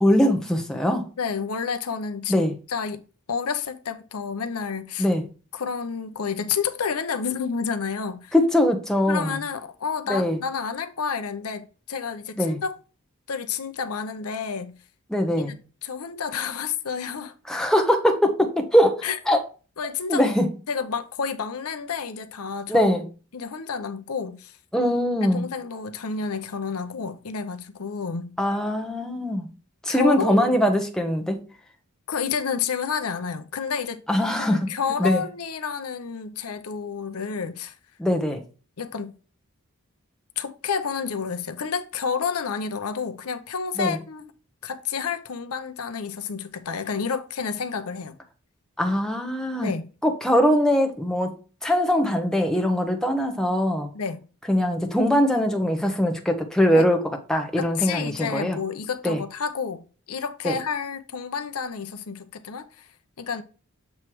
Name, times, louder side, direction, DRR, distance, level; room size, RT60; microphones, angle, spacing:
voice 1, 0.0-1.0 2.3-2.5 5.0-5.2 8.3-9.4 10.1-10.4 12.4-12.6 15.1-15.5 17.5-19.4 20.1-20.5 22.7-23.0 24.7-25.5 28.4-29.5 29.8-31.4 34.1-34.7 35.0-35.2 38.0-38.4 43.8-44.0 48.8-49.7 50.0-51.3 51.6-53.9 54.5-57.0 57.3-58.6 59.0-59.2 60.4-60.5, equal, 5° left, 0.9 m, -21 dB
voice 2, 1.2-3.0 3.3-5.1 5.5-8.3 9.1-12.8 13.3-14.8 15.4-15.6 15.8-17.3 19.0-19.2 19.8-20.3 20.7-22.9 23.3-24.6 25.2-28.3 29.9-30.5 32.1-34.0 34.4-37.7 38.8-39.1 40.4-44.3 44.6-48.1 49.6-49.9 53.9-54.2 56.7-56.9 57.6-62.9 63.2-63.4, left 6 dB, 80° left, 0.7 m, -30 dB
7.3 x 3.2 x 4.6 m
head